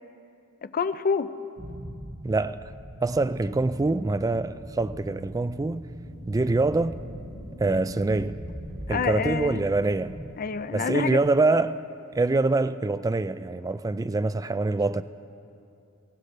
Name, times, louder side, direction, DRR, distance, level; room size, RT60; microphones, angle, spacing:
voice 1, 0.6-1.3 8.9-9.6 10.4-11.2, left 5 dB, 40° left, 0.5 m, -27 dB
sound 1, 1.6-10.3, equal, 30° right, 1.3 m, -41 dB
voice 2, 2.2-2.7 3.0-5.9 6.3-7.0 7.6-8.4 8.9-10.2 10.7-11.8 12.1-15.0, right 3 dB, 15° right, 0.3 m, -25 dB
sound 2, 5.8-8.7 11.5-11.6, equal, 85° left, 4.6 m, -44 dB
23.5 x 18.0 x 3.3 m
head